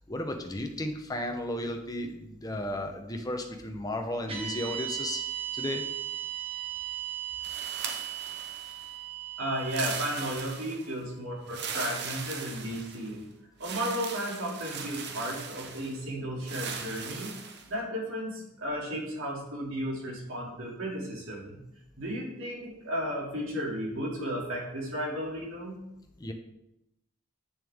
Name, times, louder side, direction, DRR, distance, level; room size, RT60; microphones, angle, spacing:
voice 1, 0.0-5.2 5.5-5.9 26.2-26.3, left 1 dB, 20° left, 4 dB, 0.8 m, -34 dB
sound 1, 4.3-12.6, right 11 dB, 25° right, 1.2 m, -38 dB
sound 2, 7.4-8.9 9.6-10.9 11.5-13.1 13.6-16.0 16.4-17.7, right 6 dB, 50° right, 0.8 m, -39 dB
voice 2, 9.4-13.2 13.6-17.3 17.7-21.6 22.0-25.8, equal, 75° right, -3 dB, 2.7 m, -34 dB
8.8 x 6.6 x 3.6 m, 0.87 s
head